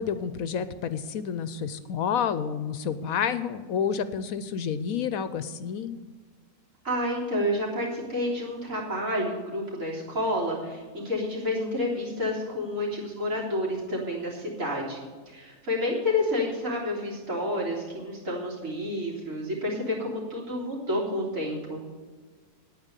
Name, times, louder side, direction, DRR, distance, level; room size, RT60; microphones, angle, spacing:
voice 1, 0.0-6.0, left 7 dB, 70° left, 13 dB, 1.0 m, -29 dB
voice 2, 6.8-21.8, left 1 dB, 60° right, -4 dB, 3.8 m, -29 dB
9.3 x 9.0 x 8.1 m, 1.4 s
omnidirectional pair, 1.6 m